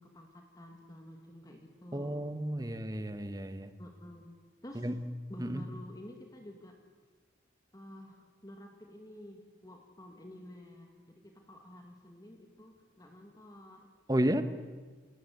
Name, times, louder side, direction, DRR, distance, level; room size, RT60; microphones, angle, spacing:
voice 1, 0.0-2.8 3.8-4.4 4.6-4.9 5.3-6.7 7.7-13.9, left 1 dB, 20° left, 2 dB, 2.3 m, -50 dB
voice 2, 1.9-3.7 4.7-4.9 5.4-5.6 14.1-14.4, right 1 dB, 20° right, 10 dB, 1.3 m, -32 dB
28.0 x 20.5 x 8.1 m, 1.4 s
head